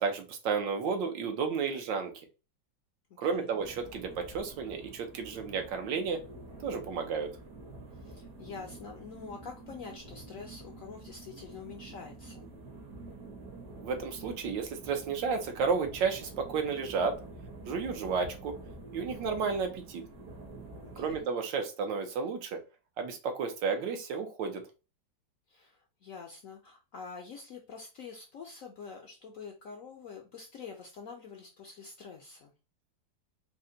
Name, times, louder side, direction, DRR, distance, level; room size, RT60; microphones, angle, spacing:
voice 1, 0.0-2.1 3.2-6.2 6.6-7.3 13.8-17.1 17.7-18.6 18.9-20.0 21.0-22.6 23.0-24.6, right 5 dB, 75° right, 5 dB, 1.5 m, -32 dB
sound 1, 3.6-21.2, right 2 dB, 55° right, 1.4 m, -48 dB
voice 2, 7.9-12.5 20.8-21.3 25.5-32.5, left 5 dB, 70° left, 2 dB, 0.8 m, -46 dB
4.1 x 2.1 x 3.7 m, 0.31 s
omnidirectional pair, 2.0 m